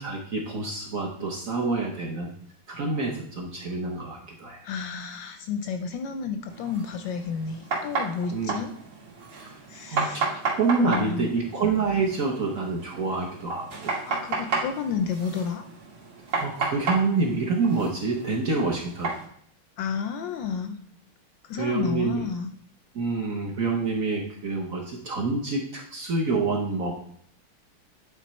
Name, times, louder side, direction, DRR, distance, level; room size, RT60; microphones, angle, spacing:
voice 1, 0.0-2.3 2.7-4.6 8.3-8.6 9.4-9.5 9.9-10.3 10.6-14.0 16.3-19.1 21.5-22.2 22.9-27.0, right 3 dB, 50° right, -1 dB, 1.1 m, -27 dB
voice 2, 4.6-8.7 9.7-10.3 10.8-11.3 14.1-15.6 19.8-20.8 21.5-22.5, left 6 dB, 75° left, 7 dB, 1.1 m, -31 dB
sound 1, 6.5-19.3, right 4 dB, 90° right, 2.6 m, -33 dB
9.2 x 3.8 x 4.2 m, 0.63 s
omnidirectional pair, 2.3 m